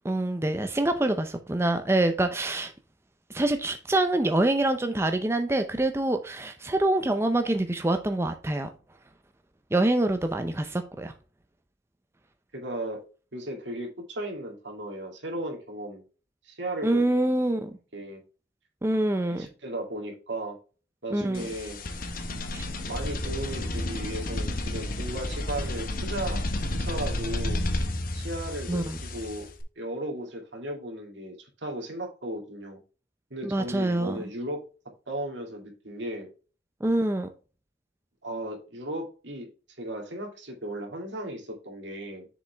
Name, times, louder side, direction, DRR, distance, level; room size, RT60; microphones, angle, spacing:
voice 1, 0.0-2.7 3.3-8.7 9.7-11.1 16.8-17.7 18.8-19.5 21.1-21.5 22.5-22.7 28.7-29.0 33.4-34.2 36.8-37.3, right 1 dB, 15° right, 0.5 m, -25 dB
voice 2, 12.5-13.0 13.3-16.0 16.4-17.1 17.9-18.2 19.2-20.6 21.0-21.8 22.8-26.4 26.7-27.6 28.1-29.5 29.8-32.8 33.3-34.6 35.1-36.3 38.2-39.5 39.8-42.3, right 1 dB, 75° right, 2.2 m, -36 dB
sound 1, 21.3-29.6, left 1 dB, 50° left, 1.0 m, -31 dB
7.0 x 5.1 x 3.3 m
head